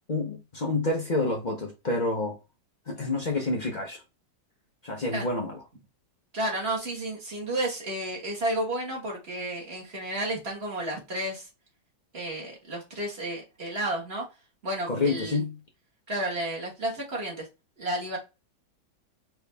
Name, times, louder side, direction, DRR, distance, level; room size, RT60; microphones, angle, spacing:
voice 1, 0.1-2.4 2.9-4.0 4.8-5.6 14.9-15.5, left 2 dB, 90° left, 0.4 m, -28 dB
voice 2, 6.3-11.5 12.1-14.2 14.6-15.4 16.1-17.5 17.8-18.2, right 1 dB, 30° right, 1.7 m, -32 dB
4.6 x 3.0 x 3.4 m
omnidirectional pair, 2.3 m